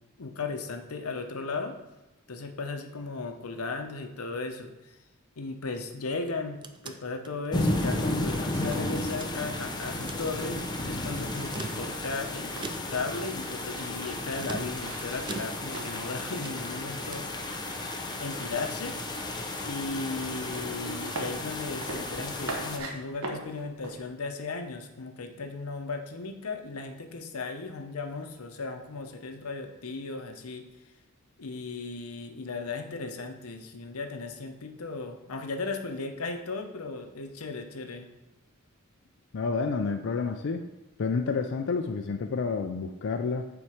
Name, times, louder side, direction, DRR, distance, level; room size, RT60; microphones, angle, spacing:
voice 1, 0.2-1.8 2.3-4.7 5.4-12.5 12.9-17.3 18.2-19.0 19.6-30.6 31.4-38.1, left 3 dB, 90° left, 5 dB, 0.8 m, -36 dB
sound 1, 6.3-8.3 8.7-9.7 9.9-10.3 11.3-12.2 12.6-13.1 14.4-15.9 16.2-17.4, right 3 dB, 20° right, 0.4 m, -42 dB
sound 2, 7.5-22.8, left 2 dB, 20° left, 0.6 m, -33 dB
sound 3, 7.7-16.4 16.7-17.6 17.9-24.0, right 2 dB, 75° right, 1.0 m, -43 dB
voice 2, 39.3-40.6 41.0-43.5, left 4 dB, 60° left, 4 dB, 0.4 m, -29 dB
7.0 x 4.5 x 5.0 m, 1.0 s
head